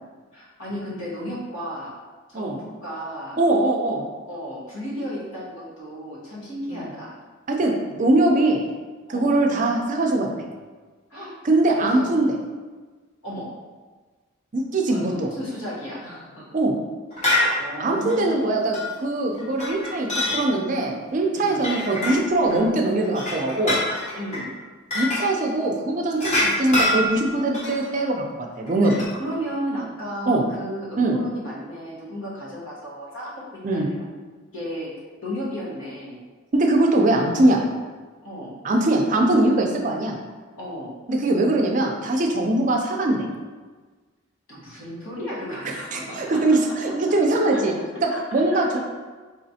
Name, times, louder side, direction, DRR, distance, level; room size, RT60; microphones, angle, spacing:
voice 1, 0.3-1.9 2.3-3.4 4.2-7.2 9.1-9.4 11.1-11.3 11.8-12.1 13.2-13.5 14.9-16.5 17.6-18.5 21.4-21.7 24.1-24.5 28.9-34.0 34.5-34.9 35.2-36.2 38.2-38.6 40.5-41.0 44.5-46.6 46.9-47.0 47.5-47.6 48.1-48.2 48.5-48.8, equal, 75° left, -6 dB, 1.2 m, -34 dB
voice 2, 3.4-4.0 6.7-6.9 7.5-8.6 9.1-10.3 11.4-12.3 14.5-15.3 16.5-16.7 17.8-20.1 20.3-23.8 24.9-29.0 30.3-30.4 31.0-31.2 33.6-33.9 36.5-37.6 38.6-40.1 41.1-43.3 45.9-47.7 48.0-48.8, right 2 dB, 35° right, 1 dB, 0.4 m, -21 dB
sound 1, 17.1-17.5 18.1-18.3 18.7-18.9 19.3-20.4 21.5-22.6 23.0-24.5 24.9-25.2 26.1-27.9 28.7-29.0, left 1 dB, 35° left, 0.9 m, -24 dB
4.0 x 3.0 x 2.7 m, 1.4 s
head